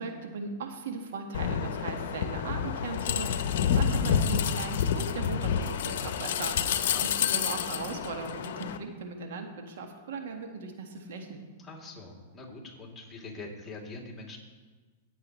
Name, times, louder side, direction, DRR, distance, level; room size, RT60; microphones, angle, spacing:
voice 1, 0.0-11.4, right 4 dB, 70° right, 4 dB, 1.7 m, -38 dB
sound 1, 1.3-8.8, left 7 dB, 65° left, 0.8 m, -29 dB
voice 2, 6.7-7.1 11.6-14.4, left 3 dB, 15° left, -2 dB, 2.9 m, -44 dB
18.5 x 8.1 x 3.2 m, 1.3 s
hypercardioid pair, 115°, 0 cm